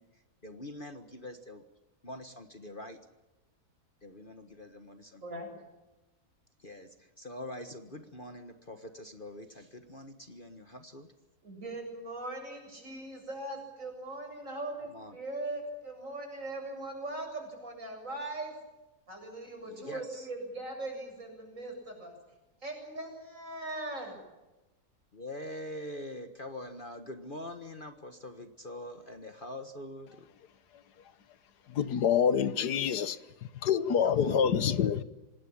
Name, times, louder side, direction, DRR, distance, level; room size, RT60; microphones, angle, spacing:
voice 1, 0.0-1.6 2.0-3.0 4.0-5.2 6.6-11.1 14.8-15.2 19.7-20.3 25.1-30.3 34.0-34.4, left 1 dB, 35° left, 1.6 m, -44 dB
voice 2, 5.2-5.5 11.4-18.5 19.1-22.2 22.6-24.2, right 2 dB, 55° right, 8.1 m, -40 dB
voice 3, 31.7-33.2 33.6-35.0, left 8 dB, 85° left, 1.6 m, -26 dB
26.5 x 19.5 x 8.8 m
omnidirectional pair, 1.7 m